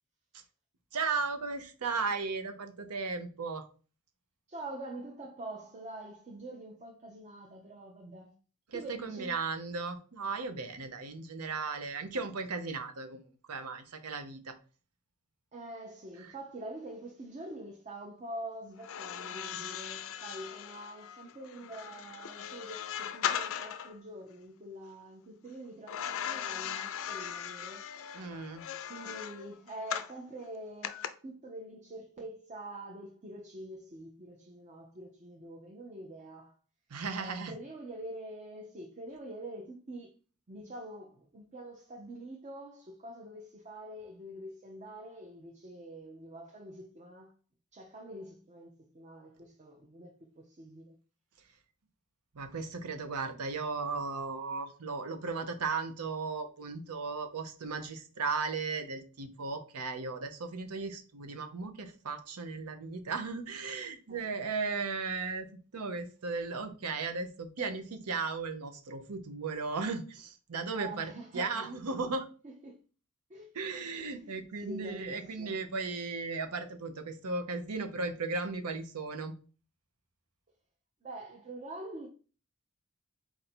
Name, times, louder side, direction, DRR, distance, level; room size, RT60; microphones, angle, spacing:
voice 1, 0.9-3.7 8.7-14.5 16.2-16.3 28.1-28.7 36.9-37.6 52.3-72.3 73.5-79.3, right 4 dB, 80° right, 0.7 m, -36 dB
voice 2, 4.5-8.3 8.7-9.4 15.5-27.9 28.9-36.6 37.2-40.1 40.5-47.3 47.7-51.0 64.1-64.3 70.7-71.7 72.4-72.8 73.3-73.5 73.9-74.3 74.6-75.6 81.0-82.1, right 1 dB, 30° right, 0.6 m, -45 dB
sound 1, 18.8-23.9 25.9-30.2 30.8-31.1, left 9 dB, 65° left, 0.4 m, -38 dB
4.4 x 2.6 x 4.3 m
head